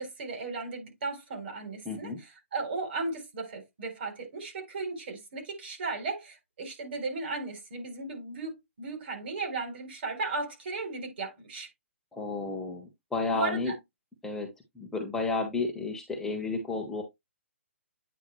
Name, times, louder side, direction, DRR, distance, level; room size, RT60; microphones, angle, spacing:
voice 1, 0.0-11.7 13.3-13.7, right 3 dB, 50° right, 3.5 m, -36 dB
voice 2, 1.8-2.2 12.1-13.7 14.2-14.5 14.7-17.0, left 3 dB, 5° left, 1.2 m, -32 dB
9.2 x 3.6 x 3.2 m
hypercardioid pair, 150°, 7 cm